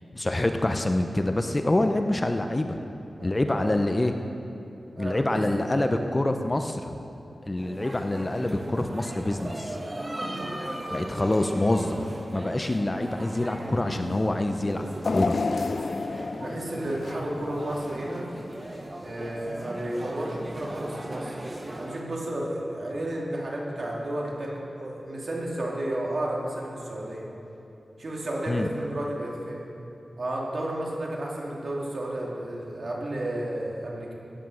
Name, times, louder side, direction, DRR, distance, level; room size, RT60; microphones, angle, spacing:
voice 1, 0.1-2.8 3.2-4.1 5.0-7.0 7.4-9.8 10.9-14.8 15.1-15.4 28.5-28.7, left 1 dB, 25° left, 6 dB, 0.7 m, -26 dB
voice 2, 3.2-3.7 4.9-6.2 16.4-18.3 19.0-21.4 21.8-27.3 28.0-29.6 30.2-34.1, right 1 dB, 55° right, -3 dB, 2.6 m, -32 dB
sound 1, 7.6-22.0, right 1 dB, 30° right, 1.3 m, -38 dB
sound 2, 15.0-18.2 18.6-18.8 19.8-19.9, left 4 dB, 55° left, 0.3 m, -30 dB
15.5 x 9.3 x 6.4 m, 2.9 s
wide cardioid pair, 105°, 0 cm